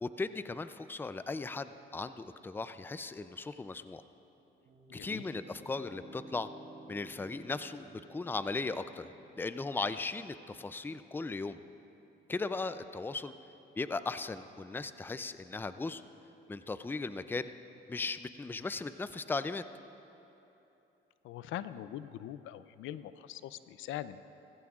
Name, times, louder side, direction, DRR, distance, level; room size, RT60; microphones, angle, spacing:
voice 1, 0.0-4.0 4.9-6.5 6.9-9.1 9.4-11.6 12.3-13.3 13.8-16.0 16.5-17.5 17.9-19.6, left 3 dB, 10° left, 12 dB, 0.4 m, -37 dB
sound 1, 4.3-13.4, right 1 dB, 70° right, 3.2 m, -56 dB
voice 2, 4.9-5.2 21.2-24.2, left 12 dB, 80° left, 14 dB, 0.4 m, -42 dB
18.5 x 15.5 x 2.4 m, 3.0 s
cardioid pair, 90°, 20 cm